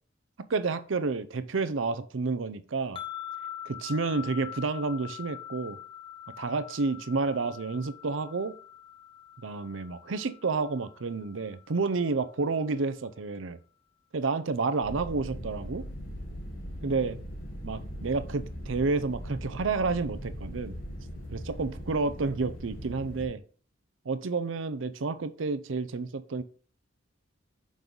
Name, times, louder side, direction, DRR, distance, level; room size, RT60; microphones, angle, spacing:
voice 1, 0.5-3.0 3.7-5.8 6.4-8.6 9.4-13.6 14.1-15.9 16.8-17.2 17.6-20.8 21.3-23.4 24.1-26.4, right 4 dB, 75° right, 0.6 m, -30 dB
sound 1, 3.0-12.2, left 11 dB, 25° left, 0.4 m, -44 dB
sound 2, 14.8-23.3, equal, 70° left, 2.9 m, -40 dB
6.1 x 5.3 x 3.9 m
head